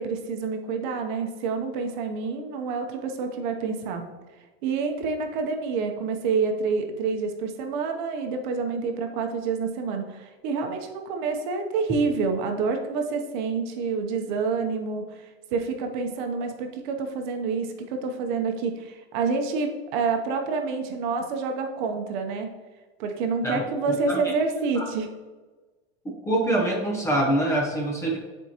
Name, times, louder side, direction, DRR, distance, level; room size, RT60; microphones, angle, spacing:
voice 1, 0.0-4.0 4.6-22.5 23.0-25.1, right 4 dB, 45° right, 4 dB, 0.8 m, -28 dB
voice 2, 23.4-24.2 24.8-24.9 26.2-28.2, right 1 dB, 10° left, -1 dB, 0.7 m, -25 dB
9.6 x 4.5 x 2.9 m, 1.3 s
supercardioid pair, 150°, 33 cm